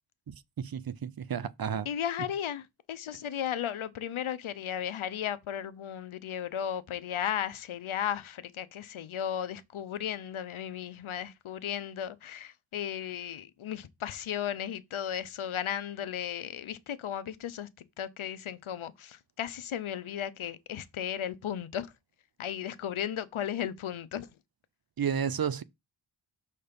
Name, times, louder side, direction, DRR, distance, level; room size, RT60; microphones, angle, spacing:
voice 1, 0.3-1.9 25.0-25.6, right 7 dB, 50° right, 0.6 m, -32 dB
voice 2, 1.8-17.7 18.0-21.9 22.4-24.3, left 9 dB, 90° left, 0.8 m, -35 dB
6.6 x 4.3 x 5.1 m
wide cardioid pair, 85°, 47 cm